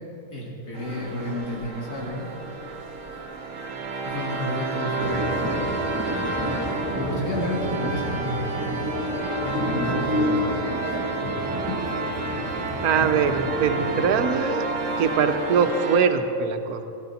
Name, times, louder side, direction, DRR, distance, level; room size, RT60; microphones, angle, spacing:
voice 1, 0.3-2.3 4.0-5.3 5.6-8.9 9.4-10.7 11.2-11.4 11.7-11.8, left 1 dB, 85° left, -4 dB, 2.5 m, -31 dB
sound 1, 0.7-16.0, right 3 dB, 60° right, 1.4 m, -30 dB
sound 2, 5.0-14.2, left 1 dB, 10° right, 1.3 m, -30 dB
voice 2, 12.8-14.7 15.0-16.8, right 6 dB, 75° right, 8 dB, 1.2 m, -22 dB
17.0 x 11.5 x 4.2 m, 2.7 s
omnidirectional pair, 1.6 m